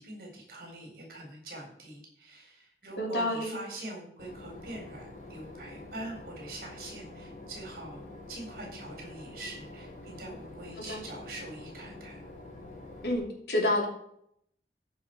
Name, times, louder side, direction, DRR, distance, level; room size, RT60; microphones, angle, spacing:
voice 1, 0.0-8.0 8.3-12.3, right 1 dB, 55° right, 0 dB, 4.4 m, -44 dB
voice 2, 3.0-3.6 10.8-11.0 13.0-13.9, left 1 dB, 70° left, 0 dB, 2.9 m, -29 dB
Boat Water vehicle / Engine, 4.2-13.2, left 2 dB, 45° left, 2.7 m, -47 dB
14.0 x 5.5 x 4.8 m, 0.68 s
head